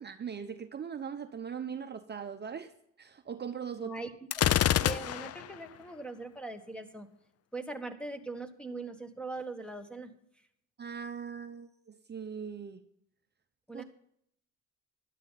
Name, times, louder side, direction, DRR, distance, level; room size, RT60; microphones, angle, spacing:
voice 1, 0.0-2.7 3.0-3.9 10.8-12.8 13.7-13.8, right 7 dB, 35° right, 0.7 m, -40 dB
voice 2, 3.8-4.1 4.8-7.1 7.5-10.1 13.7-13.8, right 3 dB, 5° left, 1.4 m, -41 dB
Gunshot gunfire, 4.3-5.5, left 11 dB, 55° left, 0.5 m, -27 dB
13.0 x 11.0 x 4.1 m
cardioid pair, 90°, 30 cm